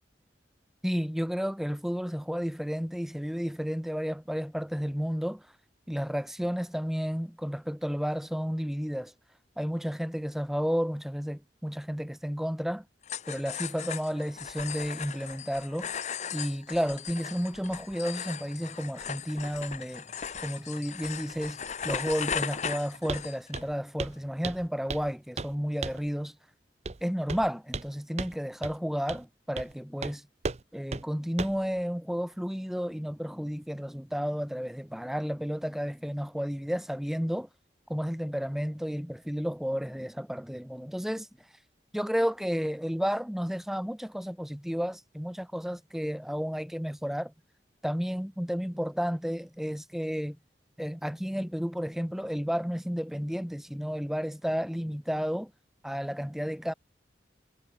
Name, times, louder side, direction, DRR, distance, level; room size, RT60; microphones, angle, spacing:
voice 1, 0.8-5.5 5.9-9.1 9.6-12.8 13.3-15.9 16.3-20.1 20.4-26.4 27.0-30.3 30.7-37.5 37.9-41.3 41.9-47.3 47.8-50.4 50.8-55.5 55.8-56.7, equal, ahead, 0.7 m, -32 dB
sound 1, 13.0-23.6, left 7 dB, 40° left, 0.8 m, -37 dB
Walk footsteps, 23.1-23.3 23.5-23.7 24.0-24.2 24.4-25.1 25.4-25.5 25.8-26.1 26.9-27.0 27.3-27.9 28.2-28.3 28.6-28.7 29.1-29.2 29.6-29.7 30.0-30.1 30.4-30.6 30.9-31.0 31.4-31.6, right 3 dB, 40° right, 0.7 m, -35 dB
head